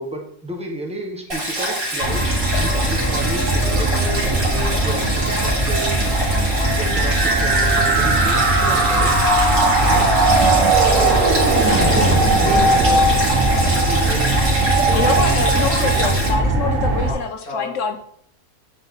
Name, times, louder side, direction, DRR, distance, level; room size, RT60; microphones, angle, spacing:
voice 1, 0.0-2.3 2.6-5.9 6.7-9.1, right 2 dB, 5° right, 0 dB, 0.8 m, -31 dB
Stream, 1.3-16.3, equal, 35° right, 2.0 m, -25 dB
sound 1, 2.0-17.1, right 2 dB, 60° right, 1.4 m, -19 dB
sound 2, 6.5-14.4, right 2 dB, 75° right, 1.7 m, -21 dB
voice 2, 7.8-8.2 11.9-14.3 14.7-15.5 15.8-16.2 16.8-17.2 17.5-17.7, left 1 dB, 80° left, -6 dB, 2.8 m, -31 dB
voice 3, 14.9-18.0, left 5 dB, 65° left, 6 dB, 0.9 m, -25 dB
8.1 x 3.8 x 3.6 m, 0.65 s
omnidirectional pair, 1.6 m